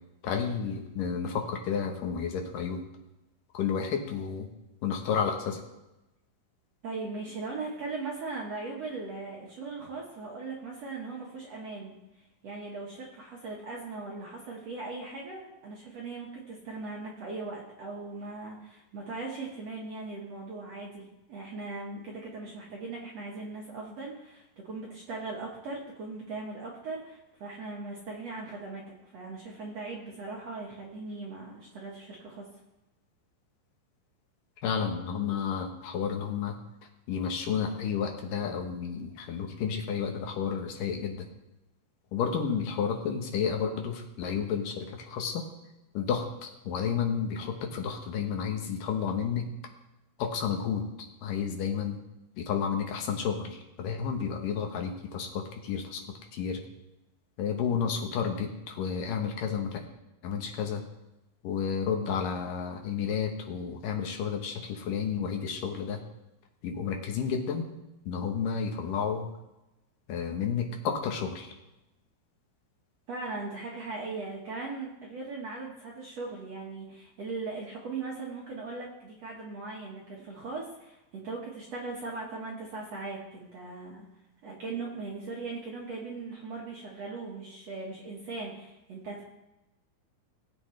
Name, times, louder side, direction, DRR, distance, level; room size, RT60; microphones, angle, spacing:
voice 1, 0.2-2.8 3.5-4.5 4.8-5.6 34.6-36.6 37.1-41.3 42.1-45.5 45.9-49.5 50.2-52.0 52.4-56.6 57.4-59.8 60.2-60.8 61.4-66.0 66.6-67.7 68.1-69.3 70.1-71.5, left 7 dB, 70° left, 3 dB, 2.4 m, -31 dB
voice 2, 6.8-12.0 12.4-28.8 29.1-32.5 73.1-84.1 84.4-89.2, right 3 dB, 60° right, -3 dB, 1.9 m, -39 dB
19.0 x 8.3 x 3.2 m, 0.96 s
omnidirectional pair, 4.6 m